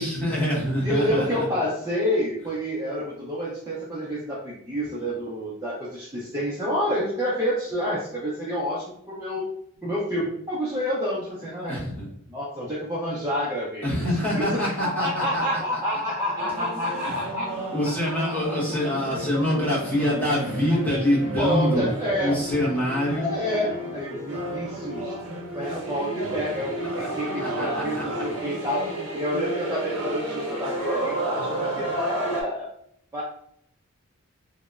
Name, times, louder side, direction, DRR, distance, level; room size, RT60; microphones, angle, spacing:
voice 1, 0.0-1.4 11.7-12.1 13.8-15.4 15.7-15.8 17.0-17.2 17.7-21.8 22.2-23.3 27.0-28.2, left 1 dB, 5° left, -8 dB, 0.9 m, -25 dB
voice 2, 0.8-9.5 9.8-11.8 12.3-13.9 14.3-17.7 18.7-18.8 21.4-22.4 23.1-25.2 25.5-28.9 29.1-32.7 33.1-33.2, equal, 15° right, -8 dB, 0.5 m, -28 dB
sound 1, 16.4-32.4, right 1 dB, 85° right, 0.7 m, -32 dB
2.8 x 2.0 x 2.3 m, 0.70 s
head